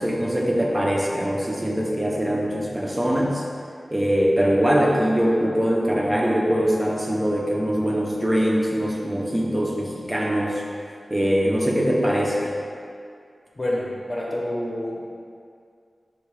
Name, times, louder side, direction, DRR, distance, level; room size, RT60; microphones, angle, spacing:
voice 1, 0.0-3.4 3.9-10.5 11.1-12.5, equal, 20° right, -2 dB, 0.6 m, -22 dB
voice 2, 13.5-15.0, left 1 dB, 30° left, -5 dB, 0.8 m, -28 dB
4.6 x 2.3 x 4.7 m, 2.3 s
wide cardioid pair, 90°, 0 cm